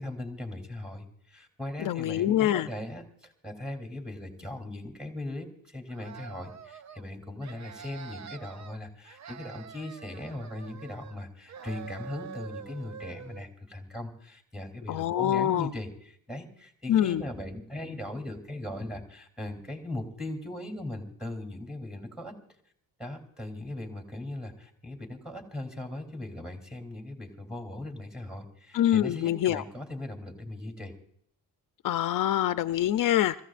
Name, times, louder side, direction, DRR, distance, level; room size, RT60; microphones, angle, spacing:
voice 1, 0.0-22.3 23.0-30.9, left 1 dB, ahead, 4 dB, 3.3 m, -39 dB
voice 2, 1.8-2.7 14.9-15.7 16.9-17.2 28.7-29.6 31.8-33.4, left 12 dB, 60° left, 11 dB, 0.6 m, -25 dB
sound 1, 5.9-7.0 7.4-8.8 9.1-11.2 11.5-13.5, right 7 dB, 50° right, 0.7 m, -45 dB
26.0 x 15.0 x 2.5 m, 0.66 s
cardioid pair, 110°, 36 cm